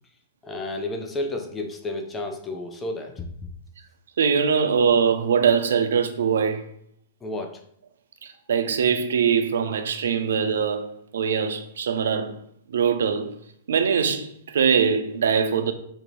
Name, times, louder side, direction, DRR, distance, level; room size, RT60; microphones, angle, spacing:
voice 1, 0.4-3.3 7.2-7.6, left 2 dB, 15° left, 0.4 m, -31 dB
voice 2, 4.2-6.6 8.2-10.9 11.1-12.4 12.7-13.3 13.7-15.7, right 6 dB, 65° right, 0.3 m, -22 dB
3.5 x 2.0 x 2.9 m
figure-of-eight pair, 105°, 0 cm